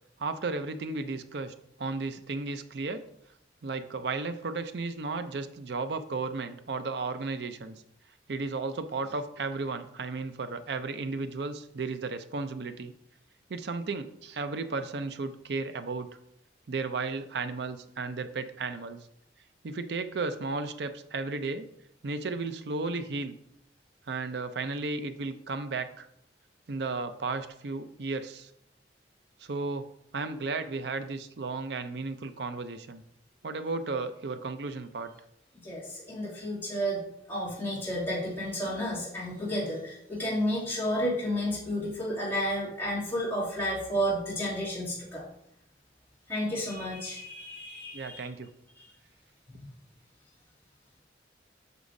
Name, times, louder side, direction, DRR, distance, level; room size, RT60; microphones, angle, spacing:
voice 1, 0.2-3.0 3.6-7.8 8.3-12.9 13.5-16.1 16.7-19.0 19.6-21.7 22.0-23.3 24.1-26.1 26.7-28.5 29.4-33.0 33.4-35.1 47.9-48.5, right 3 dB, 65° right, 9 dB, 0.5 m, -34 dB
voice 2, 35.6-37.0 37.3-45.2 46.3-48.3 48.8-48.9 49.5-49.6, equal, 15° left, -9 dB, 2.6 m, -31 dB
8.0 x 6.2 x 2.7 m, 0.76 s
head